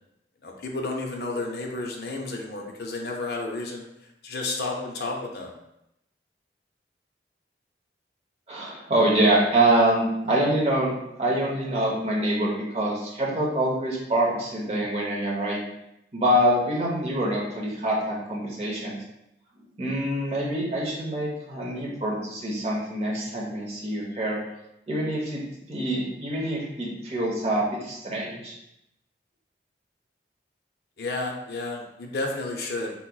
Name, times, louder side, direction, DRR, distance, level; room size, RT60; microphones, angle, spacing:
voice 1, 0.4-3.8 4.2-5.5 31.0-32.9, left 2 dB, 60° left, 0 dB, 0.5 m, -31 dB
voice 2, 8.5-10.9 11.2-15.6 16.1-19.0 19.8-24.4 24.9-25.4 25.7-28.5, right 1 dB, 35° right, -3 dB, 0.8 m, -25 dB
3.7 x 2.9 x 2.2 m, 0.83 s
head